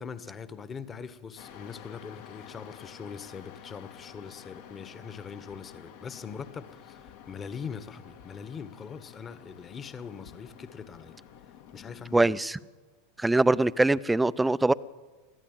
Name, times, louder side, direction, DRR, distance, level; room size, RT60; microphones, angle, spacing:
voice 1, 0.0-11.2 11.7-12.4, left 6 dB, 30° left, 1.6 m, -42 dB
sound 1, 1.4-12.3, left 9 dB, 65° left, 2.2 m, -50 dB
voice 2, 12.1-12.6 13.2-14.7, right 2 dB, 10° right, 0.6 m, -23 dB
22.5 x 14.5 x 9.2 m
hypercardioid pair, 90°, 0 cm